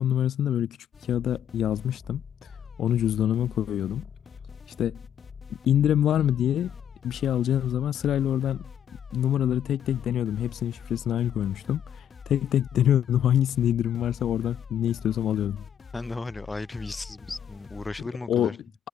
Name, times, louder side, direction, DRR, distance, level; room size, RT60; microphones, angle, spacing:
voice 1, 0.0-2.2 2.8-4.1 4.8-5.0 5.7-6.7 7.0-8.7 9.1-15.6 18.3-18.6, left 10 dB, 70° left, 0.5 m, -25 dB
sound 1, 0.9-18.1, left 5 dB, 40° left, 2.6 m, -45 dB
voice 2, 15.9-18.6, left 2 dB, 20° left, 1.8 m, -35 dB
cardioid pair, 90°, 0 cm